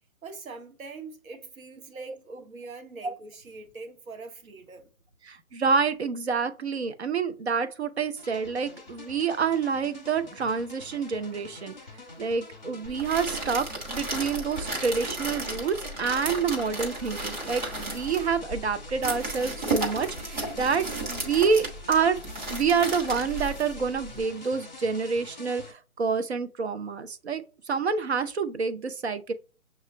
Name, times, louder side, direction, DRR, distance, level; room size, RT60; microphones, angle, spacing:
voice 1, 0.2-4.9, right 3 dB, 70° right, 1.1 m, -43 dB
voice 2, 5.3-11.8 12.2-22.2 22.5-29.3, right 5 dB, 50° right, 0.5 m, -28 dB
sound 1, 8.2-25.7, left 3 dB, 35° left, 0.5 m, -46 dB
sound 2, 12.8-24.2, right 2 dB, 30° right, 1.1 m, -34 dB
6.5 x 2.4 x 3.0 m
hypercardioid pair, 165°, 43 cm